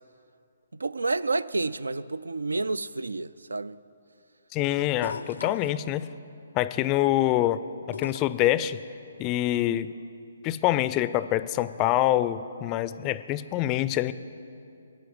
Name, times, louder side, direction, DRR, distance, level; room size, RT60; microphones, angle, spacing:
voice 1, 0.7-3.8, right 3 dB, 90° right, 0.3 m, -29 dB
voice 2, 4.5-6.1 6.5-7.6 7.9-8.8 9.2-9.9 10.4-14.1, left 14 dB, 25° left, 0.4 m, -25 dB
sound 1, 5.0-5.8 7.9-8.5 10.0-10.1, left 5 dB, 80° left, 0.5 m, -36 dB
12.5 x 8.7 x 7.8 m
hypercardioid pair, 145°, 0 cm